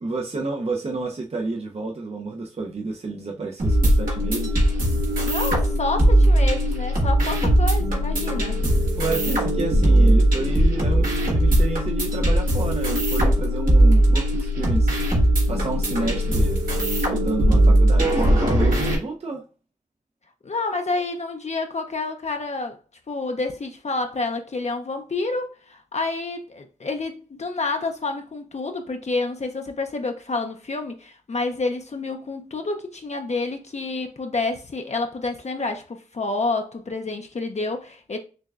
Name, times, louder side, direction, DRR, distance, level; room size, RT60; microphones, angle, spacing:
voice 1, 0.0-4.6 9.0-16.6 17.0-19.4, right 3 dB, 50° right, 0.6 m, -30 dB
sound 1, 3.6-19.0, right 1 dB, 85° right, 1.6 m, -19 dB
voice 2, 5.2-8.6 20.4-22.8 23.1-38.2, left 3 dB, 55° left, 0.5 m, -29 dB
6.5 x 2.2 x 2.4 m
wide cardioid pair, 50°, 14 cm